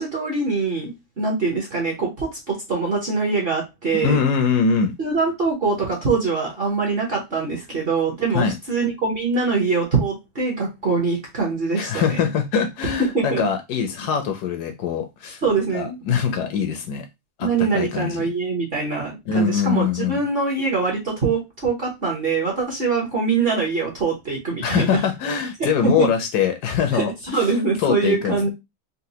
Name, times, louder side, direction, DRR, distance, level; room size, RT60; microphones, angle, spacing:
voice 1, 0.0-4.2 5.0-12.2 13.1-13.4 15.4-16.0 17.4-25.0 25.6-26.1 26.9-27.1 27.3-28.5, right 4 dB, 45° right, 0.8 m, -23 dB
voice 2, 4.0-5.0 8.3-8.5 11.8-15.4 15.7-17.0 17.4-17.5 17.7-18.2 19.3-20.2 24.6-27.5 27.8-28.5, left 6 dB, 70° left, 1.0 m, -23 dB
4.1 x 2.1 x 2.7 m
omnidirectional pair, 1.9 m